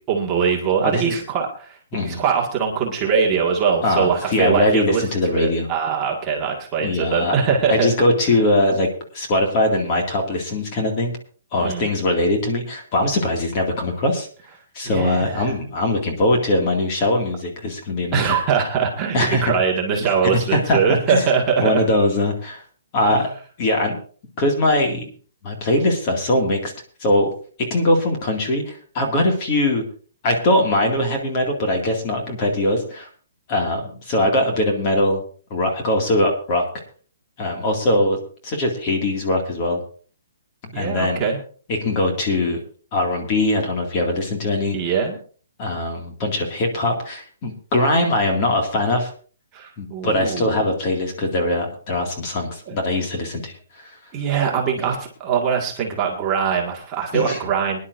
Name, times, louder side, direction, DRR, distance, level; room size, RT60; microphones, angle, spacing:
voice 1, 0.1-5.0 5.3-7.9 11.6-11.9 14.8-15.5 18.1-21.9 23.1-23.2 40.7-41.4 44.7-45.2 49.5-50.7 52.7-52.8 54.1-57.8, right 6 dB, 15° right, -1 dB, 1.8 m, -22 dB
voice 2, 0.8-1.2 1.9-2.2 3.8-5.7 6.8-7.3 7.7-8.9 9.1-11.1 11.5-14.3 14.7-18.4 19.1-19.5 20.5-20.8 21.1-21.3 21.6-22.6 22.9-23.3 23.6-24.0 24.4-25.1 25.4-26.7 27.0-27.3 27.7-29.8 30.2-33.1 33.5-35.2 35.5-36.7 37.4-38.2 38.4-39.8 40.6-41.2 41.7-42.6 42.9-44.8 45.6-49.1 49.8-53.9 54.8-54.9 57.1-57.4, left 1 dB, 25° left, 2 dB, 2.2 m, -21 dB
22.5 x 10.5 x 2.6 m, 0.41 s
hypercardioid pair, 170°, 0 cm